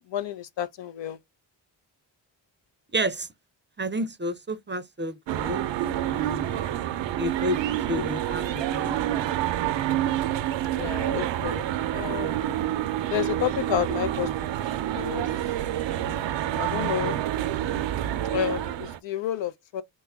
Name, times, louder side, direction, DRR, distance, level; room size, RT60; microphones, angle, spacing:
voice 1, 0.1-1.2 7.9-8.0 10.7-11.7 11.9-12.4 13.1-14.3 14.9-15.3 16.6-17.2 18.3-19.8, left 10 dB, 65° left, 0.6 m, -30 dB
voice 2, 2.9-3.3 3.8-5.6 6.0-6.6 7.1-7.6 7.9-9.5, right 1 dB, 25° right, 0.6 m, -31 dB
sound 1, 5.3-19.0, right 12 dB, 65° right, 0.6 m, -28 dB
3.1 x 2.3 x 3.4 m
supercardioid pair, 50°, 48 cm